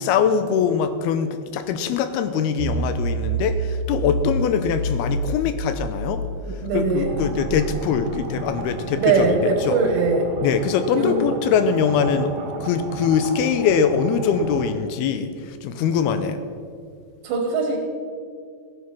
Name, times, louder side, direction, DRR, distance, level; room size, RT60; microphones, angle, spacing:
voice 1, 0.0-6.2 6.7-9.8 10.4-12.3 12.6-16.4, left 7 dB, 80° left, 10 dB, 2.5 m, -22 dB
sound 1, 2.6-8.8, right 1 dB, 45° left, 2.5 m, -28 dB
voice 2, 6.4-7.2 9.0-10.3 10.9-11.3 17.2-17.8, right 4 dB, 85° right, 0 dB, 3.6 m, -21 dB
sound 2, 7.0-14.7, right 3 dB, 55° right, 2.1 m, -34 dB
16.5 x 9.5 x 6.0 m, 2.2 s
omnidirectional pair, 4.9 m